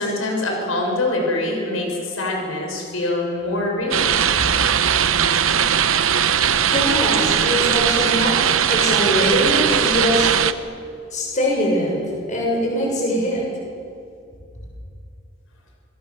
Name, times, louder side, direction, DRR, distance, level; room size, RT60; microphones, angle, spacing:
voice 1, 0.0-4.1, left 2 dB, 90° left, 1 dB, 6.2 m, -24 dB
sound 1, 3.9-10.5, right 8 dB, 85° right, 0.9 m, -19 dB
voice 2, 6.7-10.3 11.1-13.4, equal, 35° left, -2 dB, 6.8 m, -22 dB
27.0 x 21.0 x 7.1 m, 2.4 s
head